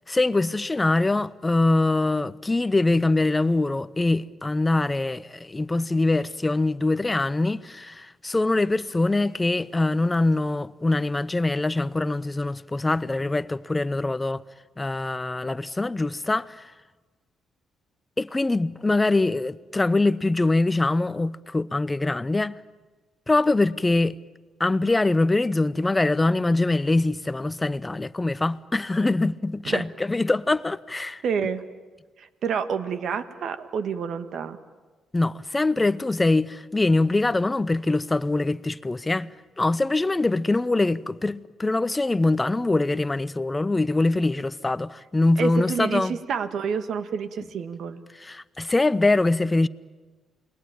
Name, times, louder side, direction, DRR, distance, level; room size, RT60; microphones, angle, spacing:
voice 1, 0.1-14.4 14.8-16.7 18.2-22.6 23.3-24.2 24.6-31.2 35.1-39.3 39.6-46.2 48.2-49.7, left 2 dB, 15° left, 0.7 m, -23 dB
voice 2, 31.2-31.6 32.2-34.6 45.4-48.0, right 6 dB, 65° right, 1.5 m, -28 dB
28.5 x 20.5 x 8.8 m
cardioid pair, 90°, 0 cm